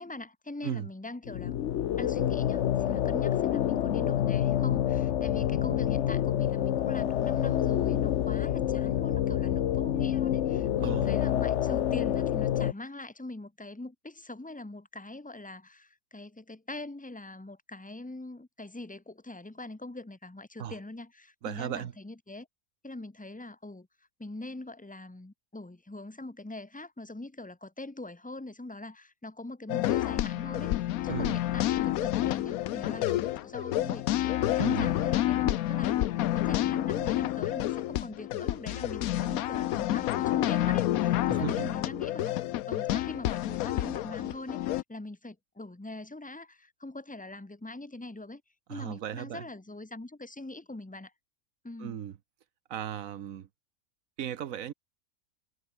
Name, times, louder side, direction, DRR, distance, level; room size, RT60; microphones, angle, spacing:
voice 1, 0.0-1.5 2.0-22.5 22.8-23.9 24.2-42.4 42.7-48.4 48.7-51.1 51.6-52.0, left 2 dB, 10° left, 0.4 m, -42 dB
sound 1, 1.2-12.7, left 11 dB, 60° left, 0.9 m, -27 dB
voice 2, 21.4-21.9 31.1-31.4 34.6-34.9 41.3-41.7 48.7-49.5 51.8-52.2 52.7-53.5 54.2-54.7, right 10 dB, 70° right, 1.3 m, -36 dB
sound 2, 29.7-44.8, left 14 dB, 85° left, 1.1 m, -29 dB
omnidirectional pair, 1.5 m